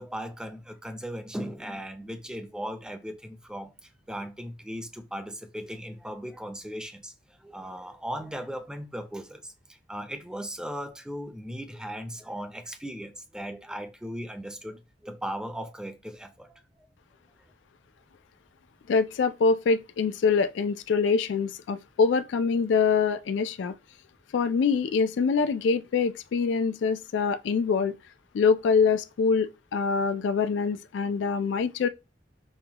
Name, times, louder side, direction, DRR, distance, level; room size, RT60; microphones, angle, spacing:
voice 1, 0.0-7.1 7.4-9.5 9.9-16.6, equal, 5° right, 0.5 m, -37 dB
voice 2, 18.9-23.7 24.3-28.0 28.3-31.9, left 5 dB, 90° left, 0.3 m, -24 dB
5.6 x 2.2 x 2.8 m
head